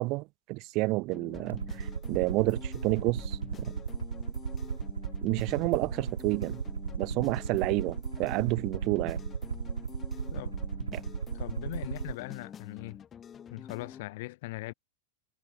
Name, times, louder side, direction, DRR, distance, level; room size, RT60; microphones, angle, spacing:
voice 1, 0.0-3.4 5.2-6.6 7.0-9.2 10.9-11.0, right 23 dB, 40° right, 0.6 m, -30 dB
sound 1, 1.1-14.0, left 8 dB, 25° left, 1.2 m, -47 dB
Aircraft, 1.5-12.1, right 6 dB, 70° right, 1.3 m, -35 dB
voice 2, 11.3-13.0 13.5-14.7, left 20 dB, 50° left, 0.7 m, -40 dB
figure-of-eight pair, 90°, 0 cm